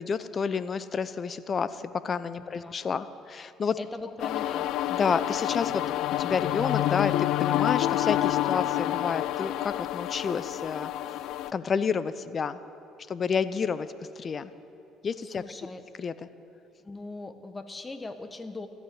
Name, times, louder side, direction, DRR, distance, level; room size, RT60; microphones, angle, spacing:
voice 1, 0.0-3.8 4.9-5.8 6.2-10.9 11.5-12.6 13.1-13.9 14.2-14.5 15.0-15.4 16.0-16.3, left 6 dB, 40° left, 14 dB, 0.7 m, -30 dB
voice 2, 2.4-2.8 3.8-4.7 15.4-15.8 16.8-18.7, left 3 dB, 20° left, 9 dB, 1.4 m, -40 dB
sound 1, 4.2-11.5, left 13 dB, 70° left, 0.4 m, -28 dB
14.5 x 11.0 x 8.6 m, 2.7 s
hypercardioid pair, 65°, 0 cm